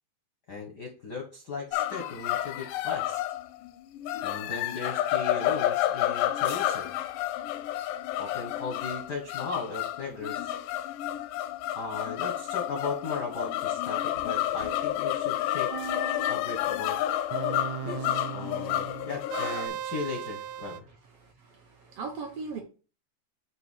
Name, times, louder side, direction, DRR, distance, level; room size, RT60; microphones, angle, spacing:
voice 1, 0.5-3.2 4.2-6.9 8.2-10.6 11.7-15.8 16.3-17.0 17.8-20.8, left 4 dB, 70° left, 2 dB, 1.0 m, -37 dB
sound 1, 1.7-19.7, left 13 dB, 85° left, 2.2 m, -30 dB
sound 2, 14.1-15.0, right 1 dB, 55° right, 1.1 m, -50 dB
sound 3, 15.7-16.6 17.3-20.8, right 10 dB, 90° right, 1.5 m, -37 dB
voice 2, 18.7-19.1 21.2-22.6, right 4 dB, 70° right, 3 dB, 1.4 m, -40 dB
7.6 x 2.9 x 5.4 m, 0.35 s
omnidirectional pair, 3.8 m